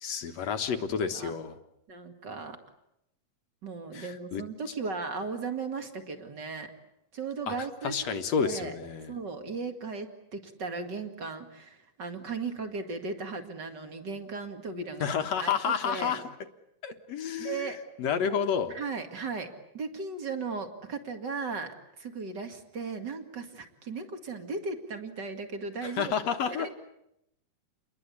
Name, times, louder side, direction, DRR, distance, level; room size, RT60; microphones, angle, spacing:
voice 1, 0.0-1.6 3.9-4.4 7.5-7.6 7.8-9.1 15.0-16.2 16.8-17.7 18.0-18.8 25.8-26.7, left 7 dB, 60° left, 8 dB, 2.1 m, -30 dB
voice 2, 1.9-2.6 3.6-6.7 7.1-8.8 9.1-15.1 15.4-16.2 17.4-17.8 18.7-26.2 26.6-26.7, right 4 dB, 35° right, 7 dB, 2.2 m, -36 dB
29.5 x 22.0 x 8.5 m, 0.81 s
omnidirectional pair, 4.2 m